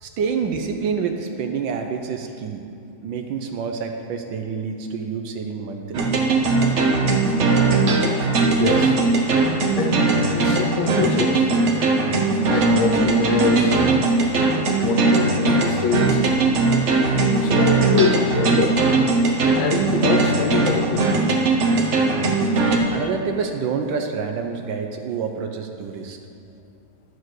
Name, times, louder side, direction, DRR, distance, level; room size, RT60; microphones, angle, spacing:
voice 1, 0.0-2.6 3.0-6.1 22.9-26.2, right 5 dB, 70° right, 5 dB, 1.3 m, -27 dB
sound 1, 5.9-22.8, right 3 dB, 55° right, 0.8 m, -19 dB
sound 2, 8.1-8.2 8.4-8.5 8.8-8.9 9.2-9.3 9.5-9.6 9.9-10.0 10.3-10.4 10.7-10.8 11.0-11.1 11.4-11.5 11.8-11.9 12.2-12.3 12.5-12.6 12.9-13.0 13.3-13.4 13.7-13.8 14.0-14.1 14.4-14.5 14.8-14.9 15.2-15.3 15.5-15.6 15.9-16.0 16.3-16.4 16.7-16.8 17.0-17.1 17.4-17.5 17.8-17.9, left 2 dB, 35° left, 1.4 m, -43 dB
voice 2, 8.6-8.9 9.8-11.5 12.4-13.7 14.8-16.3 17.2-18.8 19.6-21.1 22.6-23.0, left 6 dB, 75° left, 3 dB, 1.6 m, -24 dB
11.0 x 4.8 x 6.2 m, 2.6 s
omnidirectional pair, 2.3 m